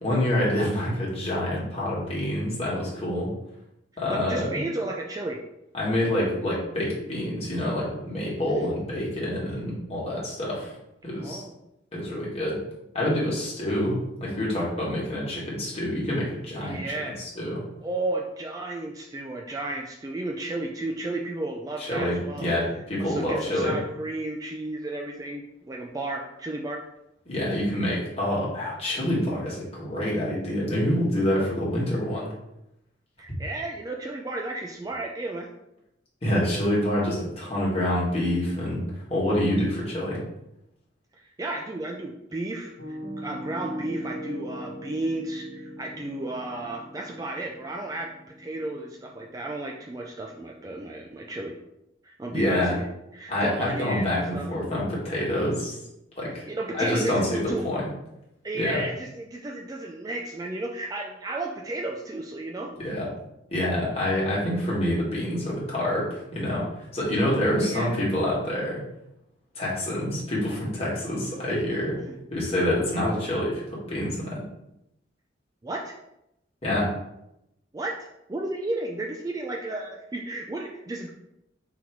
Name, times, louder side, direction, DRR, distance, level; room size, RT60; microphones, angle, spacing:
voice 1, 0.0-3.3 4.0-4.6 5.7-10.8 11.0-11.4 11.9-12.6 12.9-17.6 21.8-23.8 27.3-32.3 36.2-40.2 52.3-52.8 53.3-55.8 56.2-56.5 56.8-57.8 58.5-58.8 62.8-63.1 63.5-68.8 69.5-72.0 72.3-74.4 76.6-76.9, left 1 dB, 30° left, -6 dB, 1.5 m, -27 dB
voice 2, 4.1-5.4 8.5-8.7 11.2-11.5 16.6-17.2 17.8-22.5 23.0-26.8 33.2-35.5 41.1-51.6 52.0-52.9 53.1-54.5 56.3-57.7 58.4-62.7 67.6-67.9 72.0-72.1 75.6-76.0 77.7-78.0 78.3-81.1, right 2 dB, 20° right, 1 dB, 0.3 m, -33 dB
Piano, 42.8-50.6, equal, 60° left, 1.0 m, -40 dB
3.9 x 3.0 x 4.5 m, 0.85 s
head